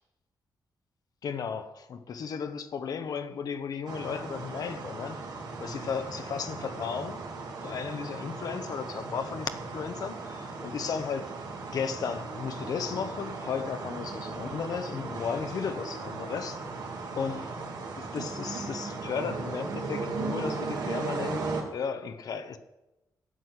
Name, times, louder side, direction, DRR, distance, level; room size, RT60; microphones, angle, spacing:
voice 1, 1.2-5.2 5.6-7.2 7.6-11.3 11.7-16.6 17.2-17.4 18.0-22.6, left 6 dB, 65° left, 1.0 m, -35 dB
sound 1, 3.9-21.6, right 3 dB, 75° right, 2.8 m, -37 dB
12.5 x 7.7 x 8.1 m
wide cardioid pair, 130°, 7 cm